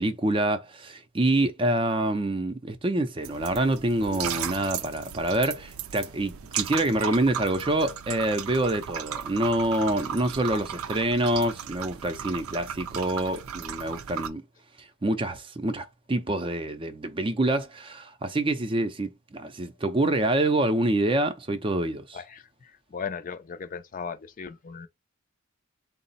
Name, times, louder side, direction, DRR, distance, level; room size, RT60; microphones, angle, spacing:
voice 1, 0.0-14.4 15.0-22.2, right 1 dB, 25° right, 0.5 m, -26 dB
sound 1, 3.2-14.3, right 9 dB, 80° right, 0.4 m, -36 dB
voice 2, 22.1-24.9, left 6 dB, 40° left, 0.4 m, -37 dB
3.8 x 2.0 x 4.0 m
head